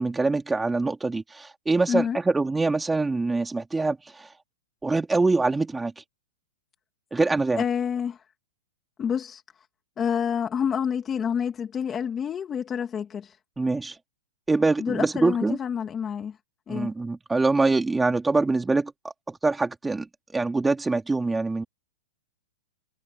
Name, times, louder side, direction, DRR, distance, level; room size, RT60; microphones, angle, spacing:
voice 1, 0.0-4.3 4.8-5.9 7.1-7.6 13.6-13.9 14.5-15.6 16.7-18.9 19.3-21.6, right 3 dB, 5° right, 3.0 m, -24 dB
voice 2, 1.9-2.2 7.6-8.2 9.0-9.4 10.0-13.4 14.8-16.4 16.7-16.9, left 7 dB, 15° left, 2.2 m, -28 dB
hypercardioid pair, 155°, 0 cm